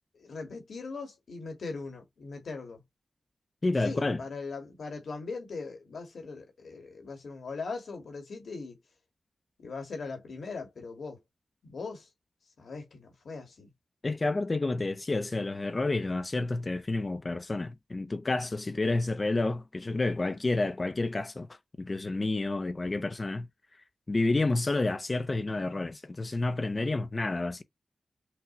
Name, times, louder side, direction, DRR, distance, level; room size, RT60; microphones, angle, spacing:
voice 1, 0.1-2.8 3.8-8.8 9.6-11.2 11.6-12.1 12.6-13.7, left 4 dB, 80° left, 1.7 m, -40 dB
voice 2, 3.6-4.2 14.0-21.5 21.8-23.5 24.1-27.6, left 2 dB, 35° left, 0.5 m, -29 dB
5.9 x 2.2 x 2.9 m
cardioid pair, 70°, 0 cm